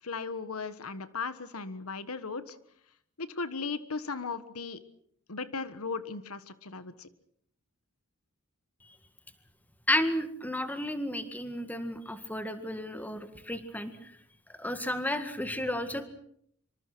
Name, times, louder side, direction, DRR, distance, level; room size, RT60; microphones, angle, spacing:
voice 1, 0.0-2.6 3.2-4.8 5.3-7.1, left 4 dB, 90° left, 12 dB, 1.5 m, -37 dB
voice 2, 9.9-14.1 14.6-16.1, left 1 dB, 10° left, 9 dB, 2.0 m, -32 dB
25.5 x 25.0 x 6.2 m, 0.68 s
head